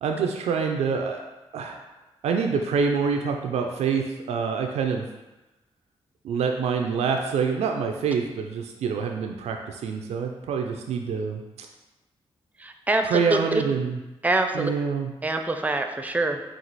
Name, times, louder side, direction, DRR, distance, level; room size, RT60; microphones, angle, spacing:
voice 1, 0.0-1.2 1.5-1.8 2.2-5.1 6.2-11.4 13.0-14.0 14.5-15.1, right 5 dB, 85° right, 3 dB, 0.4 m, -26 dB
voice 2, 12.6-13.1 14.2-14.7 15.2-16.4, right 2 dB, 15° right, 5 dB, 0.5 m, -25 dB
4.5 x 2.4 x 4.0 m, 1.0 s
cardioid pair, 65°, 11 cm